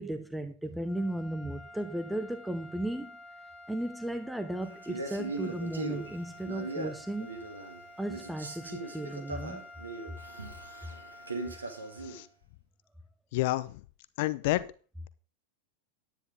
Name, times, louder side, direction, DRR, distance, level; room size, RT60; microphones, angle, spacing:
voice 1, 0.0-3.2 3.7-7.3 8.0-9.6, right 1 dB, 5° right, 0.8 m, -35 dB
sound 1, 0.8-12.3, left 2 dB, 15° left, 1.5 m, -51 dB
Male speech man speaking, 4.8-7.8 8.1-12.2, right 2 dB, 80° right, 1.9 m, -39 dB
voice 2, 13.3-13.7 14.2-14.7, left 18 dB, 50° left, 0.8 m, -29 dB
10.0 x 9.9 x 3.6 m
figure-of-eight pair, 90°, 0 cm